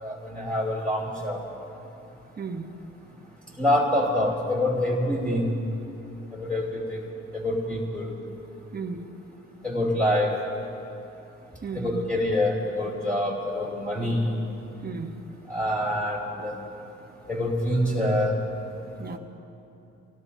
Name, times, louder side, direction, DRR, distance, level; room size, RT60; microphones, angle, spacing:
voice 1, 0.0-1.4 3.6-5.5 6.4-6.7 7.4-8.0 9.6-10.4 11.7-14.3 15.5-16.5 17.3-18.3, left 1 dB, 5° left, -7 dB, 3.1 m, -25 dB
voice 2, 2.4-2.7 8.7-9.1 11.6-12.0 14.8-15.2 19.0-19.2, right 5 dB, 30° right, 5 dB, 1.2 m, -34 dB
27.5 x 17.5 x 2.8 m, 2.9 s
cardioid pair, 90°, 30 cm